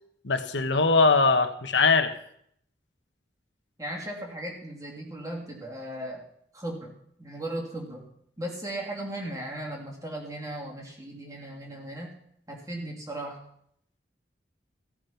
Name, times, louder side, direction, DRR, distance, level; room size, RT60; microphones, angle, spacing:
voice 1, 0.2-2.1, left 4 dB, 85° left, 7 dB, 1.2 m, -21 dB
voice 2, 3.8-6.3 6.5-6.9 7.2-8.1 8.4-12.2 12.5-13.4, right 1 dB, 20° right, -1 dB, 3.0 m, -37 dB
15.5 x 8.9 x 5.8 m, 0.69 s
head